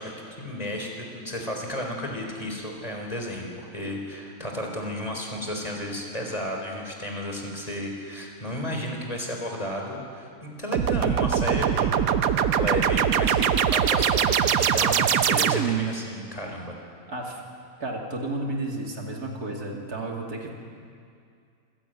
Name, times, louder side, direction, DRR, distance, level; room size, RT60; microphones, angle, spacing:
voice 1, 0.0-12.0 12.6-16.7, left 1 dB, 25° left, 1 dB, 4.1 m, -33 dB
sound 1, 10.7-15.9, right 8 dB, 70° right, 1.2 m, -22 dB
voice 2, 17.1-17.4 17.8-20.5, right 2 dB, 90° right, 0 dB, 3.3 m, -32 dB
26.5 x 16.0 x 9.1 m, 2.3 s
omnidirectional pair, 1.6 m